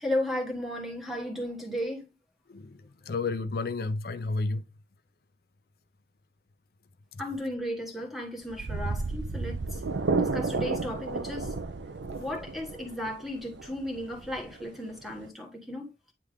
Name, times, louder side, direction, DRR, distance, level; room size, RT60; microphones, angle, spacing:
voice 1, 0.0-2.0 7.2-9.8 10.2-11.5 12.2-16.1, left 1 dB, ahead, 1.4 m, -35 dB
voice 2, 2.5-4.6 7.1-7.2, left 3 dB, 55° left, 0.5 m, -31 dB
sound 1, 8.4-15.3, right 3 dB, 85° right, 0.6 m, -32 dB
9.3 x 3.4 x 3.5 m
head